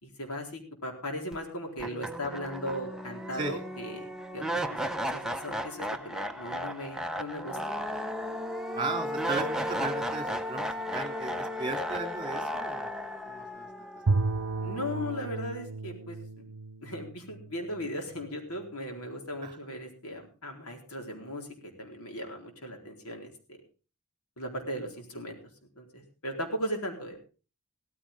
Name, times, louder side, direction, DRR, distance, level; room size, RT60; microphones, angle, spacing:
voice 1, 0.0-7.6 14.6-16.5 16.8-23.3 24.4-25.4 25.8-27.2, equal, 85° left, 3 dB, 4.2 m, -38 dB
sound 1, 1.3-1.4 1.8-14.9, equal, ahead, 0.8 m, -35 dB
voice 2, 8.7-13.9 19.4-19.5, right 3 dB, 20° right, 5 dB, 2.8 m, -36 dB
Bowed string instrument, 14.1-18.3, right 3 dB, 80° right, 0.7 m, -33 dB
17.0 x 14.5 x 3.6 m, 0.35 s
head